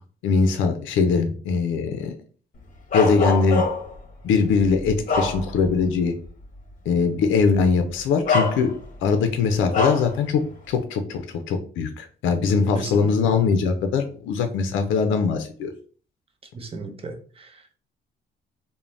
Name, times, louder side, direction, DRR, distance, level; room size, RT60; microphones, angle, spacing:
voice 1, 0.2-2.1 2.9-3.6 4.2-6.1 6.9-8.7 9.0-10.4 10.7-15.7, left 5 dB, 80° left, 0.4 m, -21 dB
Bark, 2.9-4.0 4.6-5.8 6.3-6.4 7.5-7.7 8.2-9.0 9.7-10.1, left 3 dB, 45° left, 0.8 m, -24 dB
voice 2, 12.7-13.4 16.5-17.8, right 4 dB, 30° right, 0.6 m, -36 dB
2.5 x 2.1 x 3.1 m
cardioid pair, 90°, 20 cm